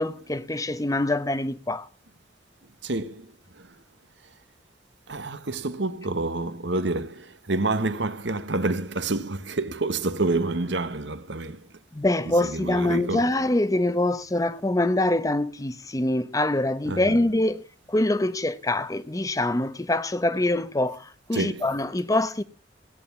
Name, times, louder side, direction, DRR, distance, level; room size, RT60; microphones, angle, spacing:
voice 1, 0.0-1.9 11.9-22.4, left 1 dB, 20° left, 0.8 m, -24 dB
voice 2, 2.8-3.7 5.1-11.7 12.3-13.3 16.8-17.2 21.3-21.7, right 2 dB, 75° right, 1.4 m, -28 dB
17.5 x 9.4 x 7.2 m
head